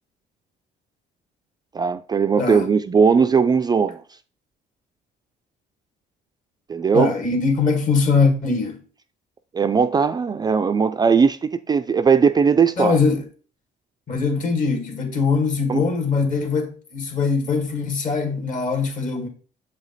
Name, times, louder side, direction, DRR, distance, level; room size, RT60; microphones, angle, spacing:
voice 1, 1.7-4.0 6.7-7.1 9.5-13.0 15.7-15.8, right 6 dB, 25° right, 0.3 m, -18 dB
voice 2, 6.9-8.8 12.8-13.2 14.1-19.3, left 4 dB, 50° left, 2.2 m, -21 dB
7.2 x 4.9 x 4.1 m
cardioid pair, 110°, 17 cm